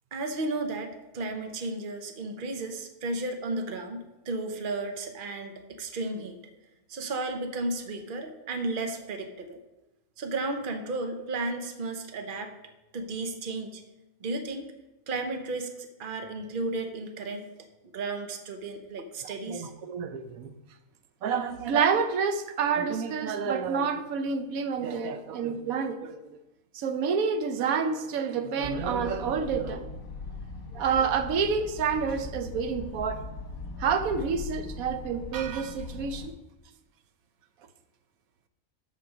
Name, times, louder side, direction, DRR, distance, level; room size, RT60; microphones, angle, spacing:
voice 1, 0.1-6.4 6.9-9.6 10.2-12.5 12.9-13.8 14.2-14.7 15.1-17.4 17.9-19.7, right 2 dB, 45° right, 1.0 m, -33 dB
voice 2, 19.5-20.5 21.2-26.3 26.7-29.9 30.7-33.2 33.8-36.3, right 6 dB, 90° right, 1.1 m, -28 dB
sound 1, 28.6-36.3, left 3 dB, 80° left, 1.6 m, -40 dB
12.5 x 4.4 x 5.0 m
omnidirectional pair, 1.4 m